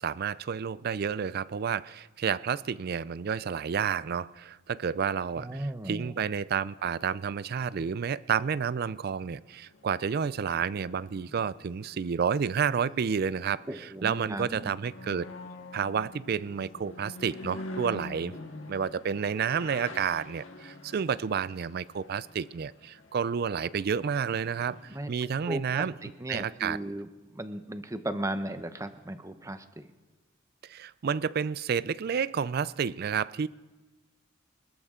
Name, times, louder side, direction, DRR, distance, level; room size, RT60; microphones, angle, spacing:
voice 1, 0.0-15.3 15.7-18.3 18.7-26.8 30.6-33.5, right 7 dB, 50° right, 0.4 m, -30 dB
voice 2, 5.4-6.2 13.7-14.7 24.9-25.1 25.5-27.1 27.3-29.8, right 1 dB, 15° right, 0.8 m, -36 dB
sound 1, 7.8-7.9 8.3-25.0, left 2 dB, 70° left, 1.7 m, -47 dB
24.5 x 13.5 x 3.7 m
head